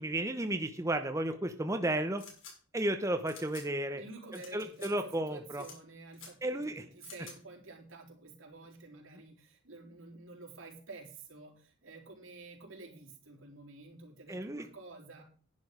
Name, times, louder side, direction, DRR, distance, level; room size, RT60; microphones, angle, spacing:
voice 1, 0.0-2.2 2.7-4.0 4.5-5.6 6.4-6.8 14.3-14.7, right 1 dB, 15° right, 6 dB, 0.8 m, -33 dB
sound 1, 2.2-2.5 3.3-3.6 4.3-4.5 4.7-4.9 5.6-5.7 6.1-6.3 7.0-7.3, left 5 dB, 75° left, 6.5 m, -49 dB
voice 2, 3.9-15.2, right 3 dB, 80° right, -1 dB, 4.1 m, -50 dB
10.5 x 10.5 x 5.0 m, 0.42 s
head